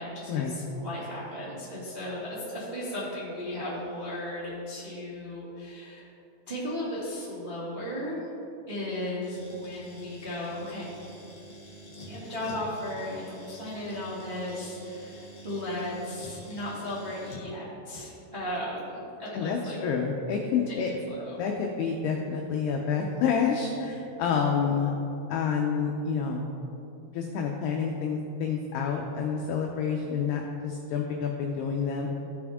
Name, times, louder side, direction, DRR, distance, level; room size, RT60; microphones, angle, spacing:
voice 1, 0.0-6.1 6.5-8.2 8.7-10.9 12.0-19.8 20.7-21.4, left 1 dB, 80° right, -10 dB, 0.5 m, -36 dB
sound 1, 9.2-17.5, right 1 dB, 45° left, 2.2 m, -47 dB
voice 2, 19.3-20.9 21.4-24.9 25.3-26.4 27.1-32.1, left 6 dB, 85° left, 1 dB, 2.3 m, -28 dB
15.5 x 6.1 x 3.5 m, 2.8 s
omnidirectional pair, 5.4 m